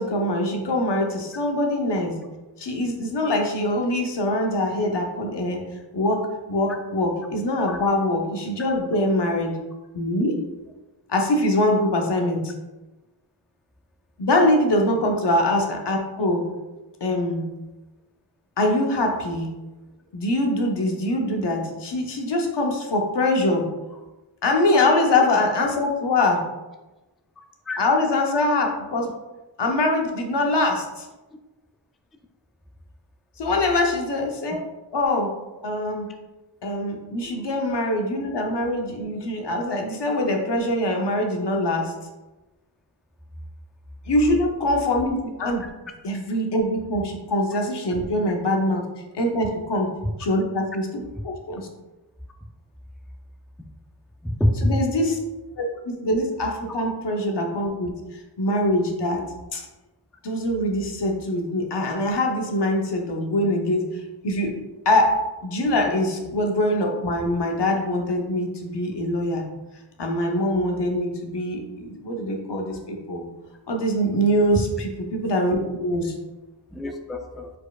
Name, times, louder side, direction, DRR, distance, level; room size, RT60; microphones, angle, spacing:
voice 1, 0.0-2.2 2.6-5.6 5.9-9.6 9.9-10.3 11.1-12.5 14.2-16.4 17.0-17.5 18.6-19.5 20.1-23.7 24.4-26.5 27.8-29.1 29.6-31.1 33.4-34.7 34.9-35.3 35.6-36.1 36.6-41.9 44.1-45.7 46.0-48.8 49.1-49.9 50.2-50.9 51.2-51.7 54.6-55.2 55.6-57.9 58.4-59.2 59.5-59.7 60.2-63.8 64.2-64.5 64.8-69.4 70.0-73.3 73.7-76.1, left 1 dB, 70° left, 1 dB, 0.9 m, -23 dB
voice 2, 37.2-37.6 50.0-50.1 54.2-54.8 76.7-77.5, left 1 dB, ahead, 4 dB, 0.3 m, -26 dB
4.7 x 4.2 x 2.4 m, 1.1 s
wide cardioid pair, 60°, 43 cm